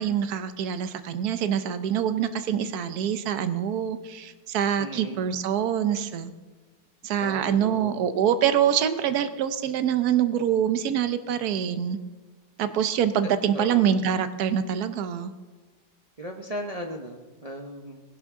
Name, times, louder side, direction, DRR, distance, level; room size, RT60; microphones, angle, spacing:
voice 1, 0.0-6.3 7.0-12.0 12.6-15.3, right 9 dB, 65° right, 11 dB, 1.1 m, -25 dB
voice 2, 4.8-5.3 7.2-8.1 13.2-14.0 16.2-18.0, equal, 80° right, 2 dB, 0.3 m, -37 dB
19.5 x 11.0 x 3.6 m, 1.3 s
omnidirectional pair, 2.0 m